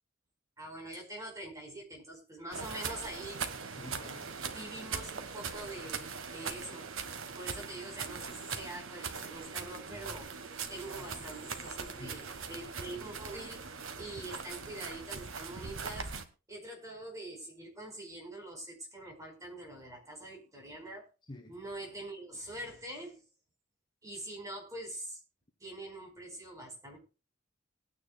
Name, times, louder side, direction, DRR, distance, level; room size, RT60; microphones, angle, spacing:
voice 1, 0.6-3.4 4.5-7.0 7.4-10.3 10.7-16.1 16.5-21.1 21.5-23.2 24.0-25.2 25.6-27.0, right 1 dB, 15° right, 4.7 m, -44 dB
sound 1, 2.5-16.3, right 5 dB, 80° right, 1.5 m, -41 dB
voice 2, 3.7-4.3 10.9-11.2 12.0-12.2 21.2-21.6, left 1 dB, 20° left, 1.2 m, -49 dB
22.0 x 9.6 x 2.3 m
head